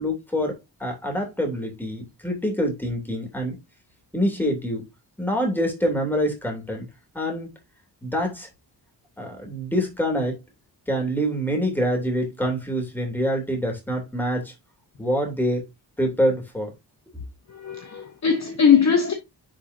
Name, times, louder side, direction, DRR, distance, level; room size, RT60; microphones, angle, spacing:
voice 1, 0.0-3.6 4.1-4.8 5.2-6.9 7.1-7.5 8.0-8.5 9.2-10.4 10.9-14.5 15.0-15.6 16.0-16.7, equal, 5° left, 3.1 m, -25 dB
voice 2, 17.5-19.1, left 7 dB, 40° left, 1.3 m, -20 dB
10.5 x 4.9 x 2.8 m
wide cardioid pair, 155°, 41 cm